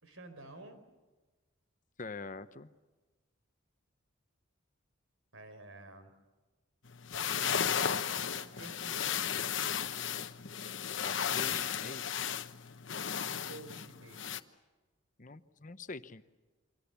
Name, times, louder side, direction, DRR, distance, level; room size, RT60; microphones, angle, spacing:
voice 1, 0.0-0.8 5.3-6.1 8.2-9.4 13.1-14.3, right 2 dB, 80° right, 9 dB, 4.6 m, -51 dB
voice 2, 2.0-2.7 11.0-12.2 15.2-16.2, left 3 dB, 40° left, 12 dB, 0.8 m, -44 dB
sound 1, 6.9-14.4, left 8 dB, 65° left, 1.0 m, -34 dB
28.5 x 24.5 x 7.0 m, 1.3 s
head